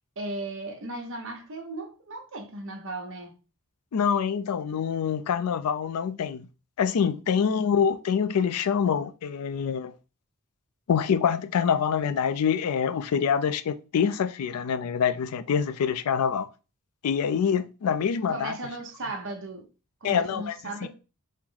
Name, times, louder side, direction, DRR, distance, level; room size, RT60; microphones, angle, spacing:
voice 1, 0.2-3.3 18.3-19.7 20.0-20.9, right 2 dB, 60° right, 0.9 m, -36 dB
voice 2, 3.9-6.5 6.8-9.9 10.9-16.5 17.0-18.6 20.0-20.9, left 7 dB, 80° left, 0.4 m, -25 dB
4.5 x 2.0 x 3.8 m
head